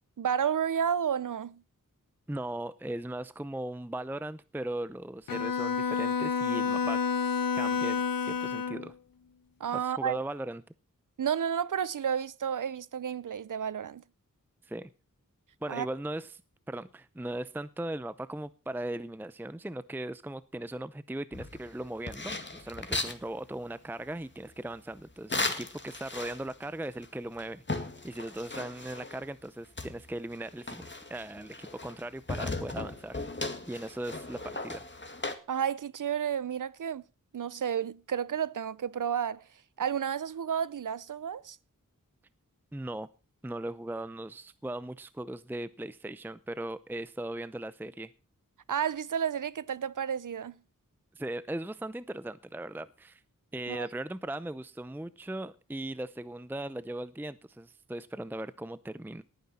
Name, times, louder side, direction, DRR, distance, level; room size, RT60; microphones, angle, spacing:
voice 1, 0.2-1.6 9.6-10.2 11.2-14.0 15.7-15.9 35.5-37.0 37.3-39.4 39.8-41.6 48.7-50.6 53.7-53.9, right 8 dB, 70° right, 0.6 m, -31 dB
voice 2, 2.3-7.0 7.5-8.9 9.7-10.6 14.6-14.9 15.6-16.4 16.7-27.6 28.0-33.2 33.6-34.8 42.7-43.1 43.4-48.1 51.1-53.2 53.5-59.2, right 1 dB, 5° right, 0.6 m, -38 dB
Bowed string instrument, 5.3-8.9, left 6 dB, 90° left, 0.9 m, -29 dB
sound 1, 21.3-23.2 25.3-26.6 27.0-27.1 27.4-29.3 29.8-32.0 32.3-35.4, left 2 dB, 35° left, 2.0 m, -37 dB
18.5 x 9.5 x 4.2 m
wide cardioid pair, 50°, 33 cm